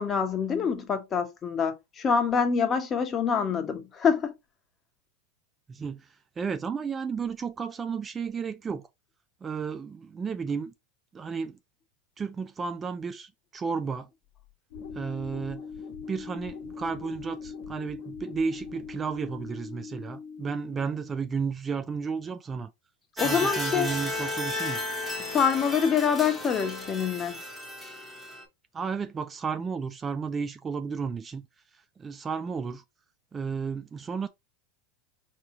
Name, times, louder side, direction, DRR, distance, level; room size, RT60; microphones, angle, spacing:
voice 1, 0.0-4.3 23.2-23.9 25.2-27.4, left 6 dB, 30° left, 1.0 m, -26 dB
voice 2, 5.7-6.1 6.4-8.9 9.4-10.7 11.1-11.6 12.2-14.1 14.9-15.6 16.1-22.7 23.1-24.8 28.7-31.5 31.7-32.8 33.3-34.3, right 5 dB, 20° right, 0.3 m, -33 dB
sound 1, 14.7-21.3, left 5 dB, 65° left, 1.2 m, -41 dB
sound 2, 23.2-28.4, left 1 dB, ahead, 1.3 m, -33 dB
4.5 x 2.9 x 2.6 m
hypercardioid pair, 110°, 0 cm